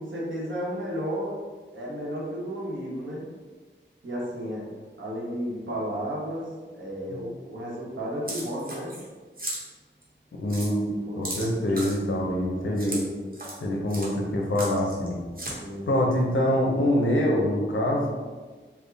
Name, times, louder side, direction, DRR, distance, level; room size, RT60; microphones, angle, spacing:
voice 1, 0.0-1.4 1.7-3.2 4.0-4.6 5.0-6.5 6.7-8.9 10.9-11.4 12.6-13.2 15.6-16.3, equal, 75° right, -6 dB, 1.1 m, -33 dB
sound 1, 8.3-9.1 9.4-9.6 10.0-10.1 10.5-10.7 11.2-12.0 12.8-13.0 13.3-13.6 13.9-14.1 14.5-15.1 15.4-15.5, right 1 dB, 50° right, 1.0 m, -35 dB
voice 2, 10.4-10.9 11.2-13.0 13.6-15.2 15.9-18.1, left 1 dB, 85° left, -1 dB, 0.7 m, -25 dB
3.5 x 2.2 x 3.4 m, 1.4 s
wide cardioid pair, 55°, 20 cm